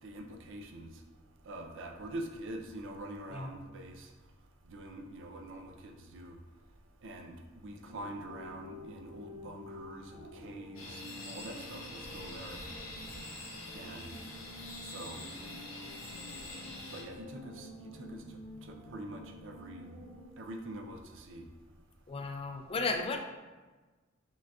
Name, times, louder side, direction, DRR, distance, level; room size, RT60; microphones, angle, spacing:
voice 1, 0.0-1.0 1.4-4.1 4.6-6.4 7.0-12.6 13.7-14.2 14.8-15.3 16.9-19.9 20.4-21.5, right 1 dB, 65° right, 4 dB, 0.5 m, -45 dB
sound 1, 7.8-20.3, left 1 dB, 45° left, 1.0 m, -50 dB
sound 2, 10.8-17.0, left 2 dB, 80° left, 0.9 m, -45 dB
voice 2, 22.1-23.2, left 3 dB, 30° left, 4 dB, 0.4 m, -34 dB
5.0 x 3.7 x 2.3 m, 1.3 s
head